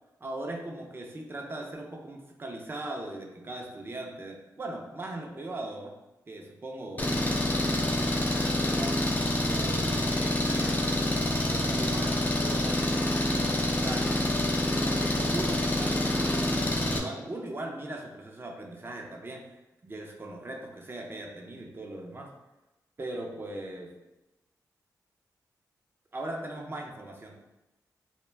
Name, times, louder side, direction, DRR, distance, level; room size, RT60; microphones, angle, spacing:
voice 1, 0.2-5.9 6.3-9.0 9.5-10.9 11.5-14.1 14.8-19.5 19.8-22.3 23.0-23.9 26.1-27.3, right 2 dB, 35° right, 1 dB, 0.5 m, -39 dB
Engine, 7.0-17.0, left 1 dB, 25° left, 0.4 m, -27 dB
2.2 x 2.1 x 3.3 m, 1.0 s
cardioid pair, 60°, 7 cm